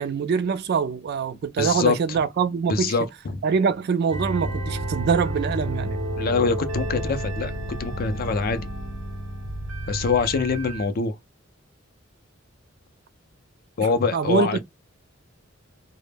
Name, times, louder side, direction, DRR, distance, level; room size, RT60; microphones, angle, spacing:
voice 1, 0.0-2.9 3.4-6.0 14.1-14.6, right 6 dB, 55° right, 0.3 m, -24 dB
voice 2, 1.6-2.0 2.7-3.4 6.2-7.5 7.8-8.7 9.9-11.2 13.8-14.6, left 4 dB, 50° left, 0.4 m, -24 dB
sound 1, 4.1-10.9, right 1 dB, 80° right, 0.7 m, -30 dB
2.1 x 2.0 x 3.1 m
head